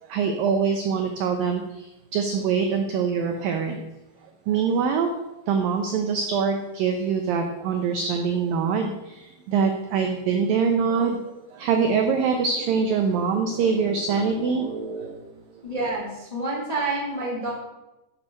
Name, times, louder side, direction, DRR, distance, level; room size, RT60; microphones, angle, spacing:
voice 1, 0.0-3.8 4.5-5.1 5.5-11.2 11.5-15.3 15.5-15.6, right 5 dB, 85° right, 5 dB, 2.0 m, -24 dB
voice 2, 15.6-17.5, right 2 dB, 20° left, -3 dB, 1.1 m, -28 dB
11.5 x 6.5 x 6.4 m, 0.99 s
omnidirectional pair, 5.3 m